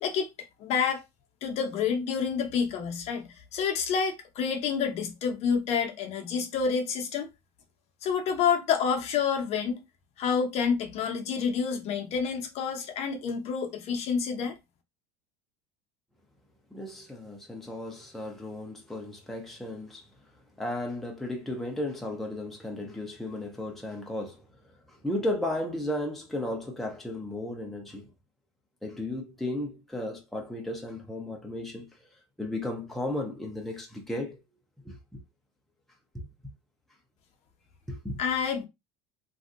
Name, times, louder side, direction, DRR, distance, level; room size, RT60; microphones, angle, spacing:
voice 1, 0.0-1.0 1.4-7.3 8.0-9.8 10.2-14.6 38.2-38.7, left 6 dB, 50° left, 0.8 m, -28 dB
voice 2, 16.7-20.0 20.6-24.4 24.9-28.1 28.8-31.9 32.4-34.4 34.9-35.0 36.1-36.3 37.9-38.2, left 1 dB, ahead, 0.8 m, -34 dB
3.2 x 2.7 x 2.6 m
supercardioid pair, 120°, 14 cm